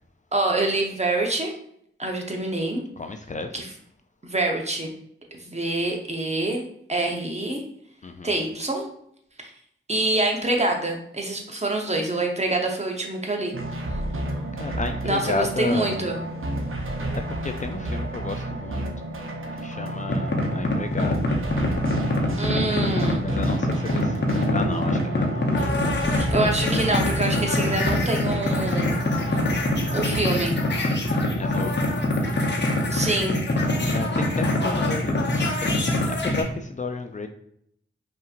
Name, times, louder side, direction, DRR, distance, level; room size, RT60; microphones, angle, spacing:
voice 1, 0.3-1.5 2.0-2.8 3.5-3.7 4.2-4.9 5.3-7.6 8.2-8.8 9.9-13.6 15.0-16.2 22.4-23.2 26.1-28.9 29.2-29.5 29.9-30.5 32.9-33.4, right 2 dB, 30° right, 1 dB, 0.9 m, -26 dB
voice 2, 3.0-3.5 8.0-8.4 14.5-16.1 17.3-18.9 19.6-21.3 22.2-26.4 30.8-32.3 33.9-37.3, left 3 dB, 35° left, 6 dB, 0.4 m, -33 dB
sound 1, 13.5-30.2, right 1 dB, 75° right, 0.7 m, -31 dB
sound 2, 20.1-36.4, left 2 dB, 55° left, 0.9 m, -24 dB
5.4 x 2.8 x 2.5 m, 0.70 s
wide cardioid pair, 55°, 21 cm